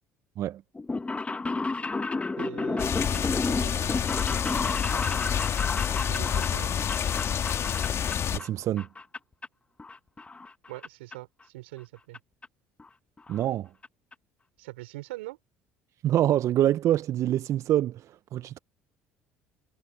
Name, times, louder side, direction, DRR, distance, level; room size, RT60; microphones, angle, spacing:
sound 1, 0.7-8.5 8.8-9.5 9.8-10.9 11.1-11.2 12.1-12.2 12.4-12.5 12.8-12.9 13.2-13.5 13.8-13.9 14.1-14.2, left 3 dB, 20° left, 1.3 m, -32 dB
voice 1, 2.4-3.9 6.1-6.8 10.7-12.2 14.6-15.4, right 20 dB, 80° right, 4.9 m, -42 dB
sound 2, 2.8-8.4, left 8 dB, 45° left, 2.3 m, -28 dB
voice 2, 8.3-8.9 13.3-13.7 16.0-18.6, right 12 dB, 55° right, 0.6 m, -26 dB
hypercardioid pair, 65°, 6 cm